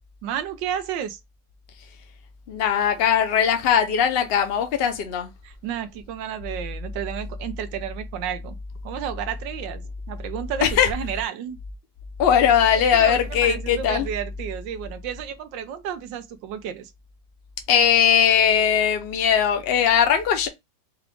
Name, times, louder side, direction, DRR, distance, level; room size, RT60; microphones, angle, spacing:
voice 1, 0.2-1.2 5.4-8.6 8.8-9.8 10.1-11.6 12.9-16.9, right 9 dB, 85° right, 1.3 m, -31 dB
voice 2, 2.5-5.3 10.6-10.9 12.2-14.1 17.7-20.5, left 8 dB, 50° left, 0.7 m, -19 dB
4.7 x 2.4 x 3.4 m
omnidirectional pair, 1.9 m